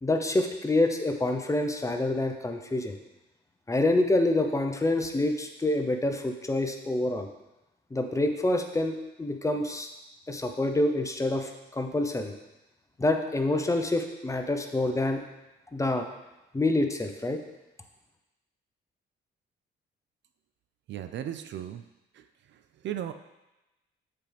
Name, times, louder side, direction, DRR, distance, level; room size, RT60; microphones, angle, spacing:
voice 1, 0.0-3.0 3.7-7.3 7.9-9.9 10.3-12.3 13.0-15.2 15.7-16.1 16.5-17.4, left 2 dB, 15° left, 5 dB, 0.7 m, -27 dB
voice 2, 20.9-21.8 22.1-23.1, right 10 dB, 65° right, 9 dB, 0.5 m, -37 dB
7.6 x 4.5 x 3.4 m, 0.99 s
cardioid pair, 90°, 20 cm